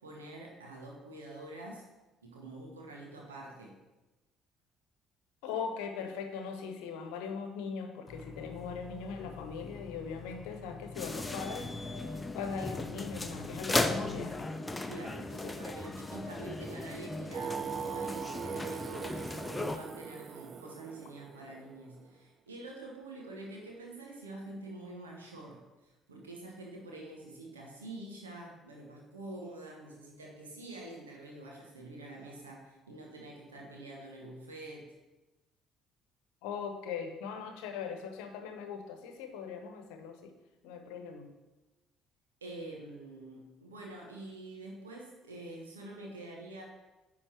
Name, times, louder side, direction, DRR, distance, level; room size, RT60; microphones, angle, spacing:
voice 1, 0.0-1.8 2.2-3.7 14.9-34.9 42.4-46.6, right 2 dB, 80° right, -1 dB, 1.1 m, -46 dB
voice 2, 5.4-11.7 12.3-14.3 36.4-40.3 40.6-41.3, left 6 dB, 65° left, 6 dB, 1.0 m, -40 dB
Burping eructation, 8.1-14.4, left 4 dB, 35° left, 1.3 m, -47 dB
sound 1, 10.9-19.8, left 2 dB, 15° left, 0.7 m, -37 dB
Singing, 17.3-22.1, right 6 dB, 45° right, 0.3 m, -40 dB
9.9 x 3.8 x 6.2 m, 1.1 s
figure-of-eight pair, 50°, 0 cm